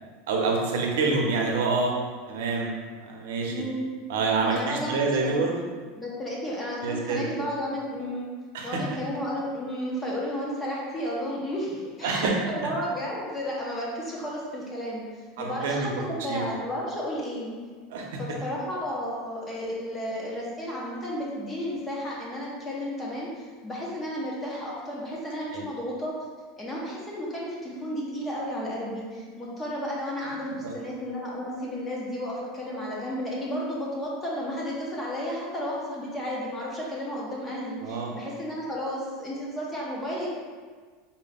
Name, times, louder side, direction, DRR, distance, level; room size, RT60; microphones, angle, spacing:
voice 1, 0.3-1.9 2.3-3.6 4.1-5.5 6.8-7.4 8.5-8.8 12.0-12.3 12.6-12.7 15.4-15.9 16.3-16.4 17.9-18.0 25.5-25.6 30.6-30.7 37.8-38.1, right 4 dB, 75° right, 0 dB, 0.6 m, -27 dB
voice 2, 3.5-3.9 4.4-5.4 6.0-8.3 8.6-15.1 15.4-17.5 18.2-26.1 26.6-40.3, equal, 10° left, -4 dB, 0.5 m, -33 dB
3.7 x 2.2 x 4.0 m, 1.5 s
supercardioid pair, 175°, 0 cm